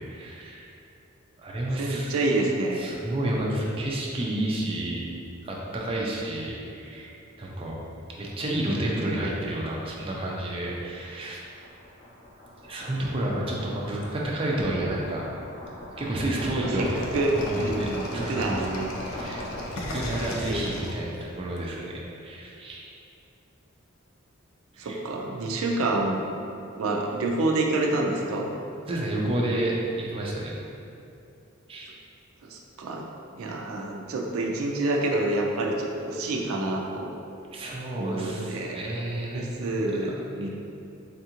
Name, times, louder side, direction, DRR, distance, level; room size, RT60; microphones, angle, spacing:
voice 1, 0.1-0.7 1.4-2.2 2.8-5.1 5.4-7.1 7.4-7.8 8.1-11.4 12.6-15.3 16.0-17.0 17.3-18.7 19.1-19.5 19.9-21.8 22.2-22.9 24.7-25.0 28.9-30.5 31.7-31.9 37.5-39.5 40.1-40.5, right 1 dB, 25° right, -3 dB, 0.4 m, -30 dB
voice 2, 1.8-2.9 16.6-16.9 17.1-18.9 20.5-20.7 24.8-26.2 26.7-28.5 32.5-33.0 33.4-37.1 37.9-38.8 39.3-40.5, right 2 dB, 90° right, 0 dB, 0.4 m, -27 dB
sound 1, 10.6-20.0, left 1 dB, 30° left, 0.6 m, -41 dB
sound 2, 16.8-21.6, left 1 dB, 75° left, 0.5 m, -36 dB
3.5 x 2.4 x 2.8 m, 2.6 s
head